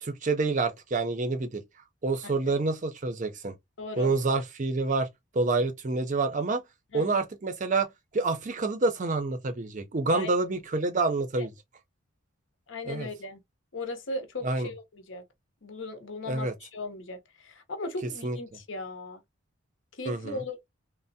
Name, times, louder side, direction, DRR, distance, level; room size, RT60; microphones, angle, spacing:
voice 1, 0.0-1.6 2.0-3.5 4.0-5.1 5.3-6.6 6.9-11.5 12.9-13.1 14.4-14.7 16.3-16.5 18.2-18.4 20.1-20.4, right 3 dB, 35° right, 0.5 m, -28 dB
voice 2, 3.8-4.1 6.9-7.2 10.1-10.3 11.4-11.5 12.7-13.4 13.7-15.2 15.6-19.2 19.9-20.7, left 2 dB, 65° left, 0.7 m, -37 dB
3.3 x 2.0 x 2.6 m
head